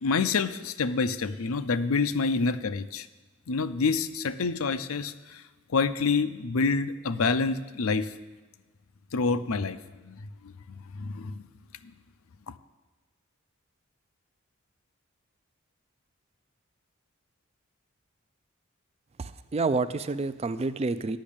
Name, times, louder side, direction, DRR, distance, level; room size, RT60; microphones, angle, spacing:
voice 1, 0.0-3.1 3.5-5.4 5.7-8.1 9.1-11.5 11.8-11.9 12.5-12.6, left 4 dB, 90° left, 11 dB, 0.6 m, -28 dB
voice 2, 19.2-21.2, right 3 dB, 30° right, 14 dB, 0.4 m, -29 dB
10.0 x 6.3 x 8.7 m, 1.2 s
head